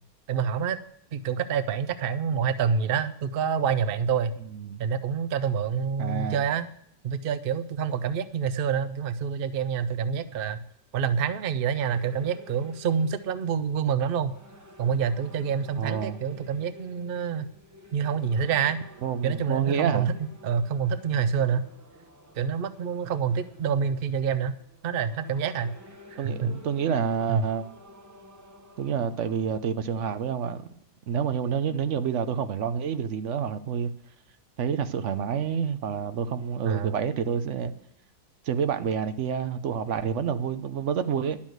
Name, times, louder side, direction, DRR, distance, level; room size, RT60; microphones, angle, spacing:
voice 1, 0.3-0.8 1.1-4.3 4.8-6.7 7.0-10.6 10.9-14.3 14.8-17.5 17.9-18.8 19.2-20.1 20.4-21.7 22.4-24.5 24.8-25.7 26.1-26.5 27.3-27.4 36.6-37.0, right 7 dB, 80° right, 0.5 m, -27 dB
voice 2, 6.0-6.4 15.8-16.2 19.0-20.1 26.2-27.7 28.8-30.6 31.1-33.9 34.6-37.7 38.4-41.4, right 7 dB, 60° right, 0.9 m, -28 dB
sound 1, 11.9-30.0, left 1 dB, 15° right, 0.9 m, -51 dB
11.0 x 7.3 x 7.8 m
omnidirectional pair, 1.8 m